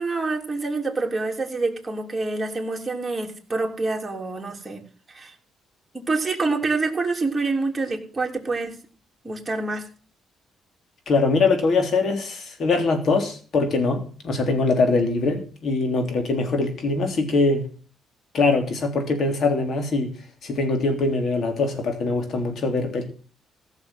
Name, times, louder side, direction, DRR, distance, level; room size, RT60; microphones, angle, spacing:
voice 1, 0.0-4.8 5.1-5.3 5.9-8.7 9.2-9.8, right 3 dB, 20° right, 3.2 m, -26 dB
voice 2, 11.1-17.6 18.3-20.1 20.4-23.0, left 3 dB, 55° left, 3.4 m, -22 dB
15.5 x 6.6 x 7.5 m
cardioid pair, 90°, 0 cm